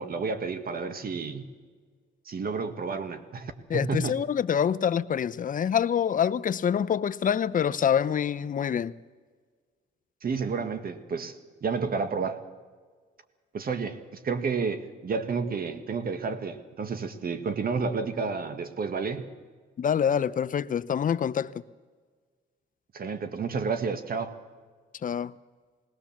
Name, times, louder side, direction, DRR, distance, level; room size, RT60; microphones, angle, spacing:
voice 1, 0.0-1.4 2.2-4.2 10.2-11.3 11.6-12.4 13.5-14.0 14.2-19.3 22.9-24.3, right 5 dB, 50° right, 1.7 m, -30 dB
voice 2, 3.7-8.9 19.8-21.5 25.0-25.4, left 8 dB, 40° left, 0.7 m, -26 dB
19.5 x 19.0 x 7.3 m
cardioid pair, 90°, 20 cm